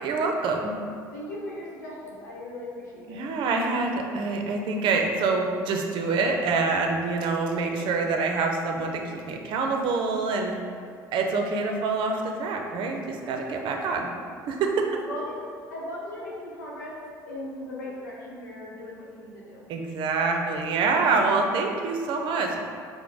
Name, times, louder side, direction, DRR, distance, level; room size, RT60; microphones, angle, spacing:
voice 1, 0.0-0.7 3.1-10.6 11.1-14.1 14.5-14.9 19.7-22.6, right 4 dB, 60° right, 3 dB, 0.6 m, -26 dB
voice 2, 1.1-3.2 14.9-15.4 15.7-17.0 17.3-19.7, left 1 dB, 90° left, -5 dB, 0.8 m, -38 dB
5.0 x 2.1 x 4.6 m, 2.2 s
hypercardioid pair, 60°, 9 cm